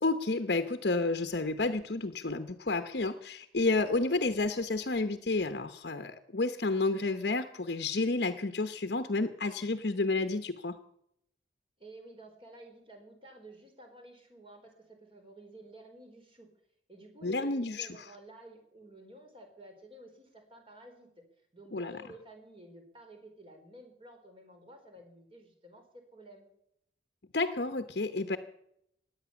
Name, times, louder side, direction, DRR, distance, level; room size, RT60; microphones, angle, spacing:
voice 1, 0.0-10.8 17.2-18.0 21.7-21.9 27.3-28.4, left 3 dB, 60° left, 9 dB, 0.9 m, -30 dB
voice 2, 11.8-16.5 16.9-21.2 21.5-26.5, right 1 dB, 30° right, 4 dB, 4.4 m, -52 dB
17.0 x 11.0 x 7.1 m, 0.74 s
head